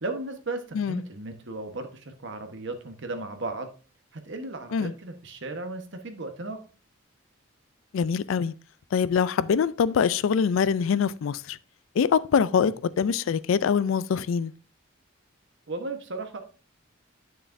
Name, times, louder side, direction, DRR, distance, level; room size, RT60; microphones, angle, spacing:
voice 1, 0.0-3.7 4.1-6.6 12.5-12.7 15.7-16.4, right 2 dB, 60° right, 1.2 m, -35 dB
voice 2, 7.9-8.5 8.9-11.6 12.0-14.5, left 6 dB, 70° left, 0.3 m, -24 dB
9.3 x 6.6 x 2.6 m
head